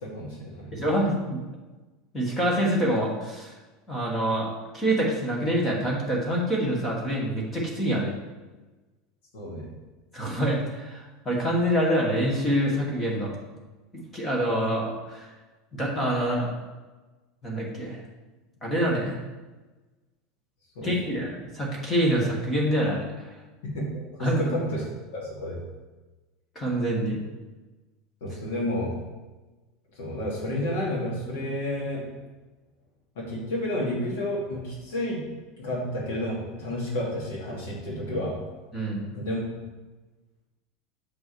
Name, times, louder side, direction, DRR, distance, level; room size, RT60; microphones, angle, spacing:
voice 1, 0.0-0.8 9.3-9.7 20.8-21.2 23.6-24.9 25.1-25.6 28.2-28.9 30.0-32.0 33.2-35.2 35.6-38.3 39.1-39.4, left 1 dB, 80° left, -5 dB, 2.4 m, -31 dB
voice 2, 0.7-1.4 2.1-3.5 3.9-8.1 10.1-13.3 13.9-15.3 15.7-16.5 17.4-18.0 18.6-19.2 20.8-23.3 24.2-24.5 26.5-27.2 38.7-39.0, right 1 dB, 10° left, -2 dB, 1.4 m, -26 dB
6.5 x 5.4 x 4.6 m, 1.2 s
supercardioid pair, 175°, 0 cm